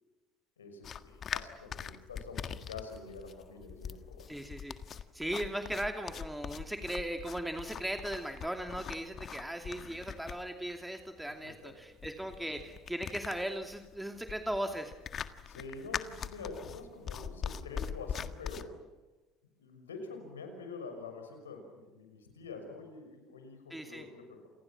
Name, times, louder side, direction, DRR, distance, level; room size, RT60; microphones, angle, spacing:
voice 1, 0.6-4.3 11.3-11.7 12.6-12.7 15.4-18.9 19.6-24.5, left 3 dB, 90° left, 5 dB, 6.0 m, -46 dB
sound 1, 0.8-18.6, left 8 dB, 45° left, 1.7 m, -42 dB
voice 2, 4.3-4.8 5.1-14.9 23.7-24.1, right 1 dB, 5° right, 5 dB, 2.7 m, -38 dB
30.0 x 28.5 x 6.1 m, 1.1 s
hypercardioid pair, 65°, 0 cm